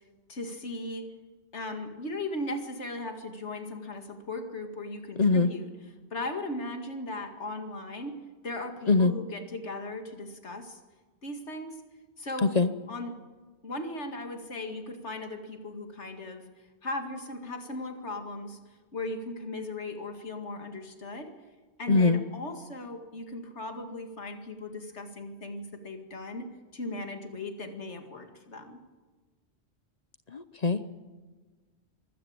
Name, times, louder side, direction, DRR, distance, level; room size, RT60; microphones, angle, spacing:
voice 1, 0.3-1.1 1.5-5.7 6.1-8.2 8.4-10.8 11.2-11.7 12.2-12.6 12.9-13.2 13.6-16.5 16.8-18.6 18.9-21.3 21.8-26.5 26.7-28.8, left 2 dB, 85° left, 6 dB, 2.5 m, -37 dB
voice 2, 5.2-5.5 8.9-9.1 12.4-12.7 21.9-22.2 30.3-30.9, left 3 dB, 40° left, 12 dB, 0.8 m, -22 dB
24.0 x 16.0 x 8.7 m, 1.4 s
omnidirectional pair, 1.1 m